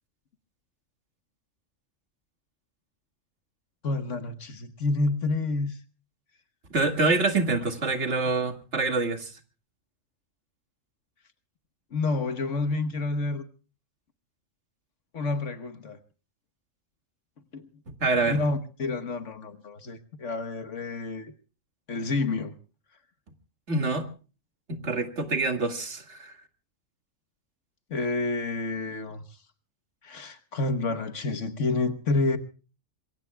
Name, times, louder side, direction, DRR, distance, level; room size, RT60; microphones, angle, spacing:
voice 1, 3.8-5.8 11.9-13.4 15.1-16.0 17.5-17.7 18.3-21.3 21.9-22.6 27.9-29.2 30.0-32.4, left 3 dB, 65° left, 1.5 m, -29 dB
voice 2, 6.7-9.3 17.9-18.4 23.7-24.1 24.7-26.3, right 3 dB, 60° right, 2.3 m, -26 dB
26.5 x 23.0 x 2.3 m
omnidirectional pair, 1.4 m